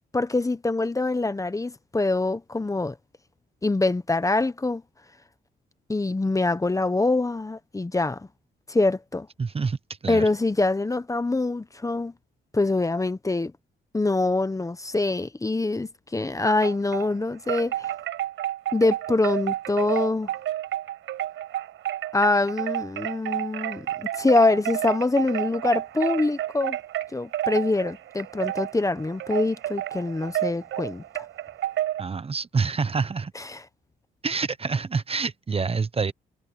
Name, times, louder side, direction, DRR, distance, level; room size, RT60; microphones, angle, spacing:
voice 1, 0.1-2.9 3.6-4.8 5.9-8.3 8.7-9.3 10.1-12.1 12.5-13.5 13.9-17.9 18.7-20.3 22.1-26.8 27.1-31.2 33.3-33.6, left 2 dB, 15° left, 1.1 m, -24 dB
voice 2, 9.4-9.8 10.0-10.3 32.0-33.3 34.2-36.1, right 4 dB, 30° right, 1.1 m, -27 dB
Wind chime, 16.4-17.1 17.5-32.0, right 13 dB, 80° right, 6.0 m, -30 dB
cardioid pair, 90°, 20 cm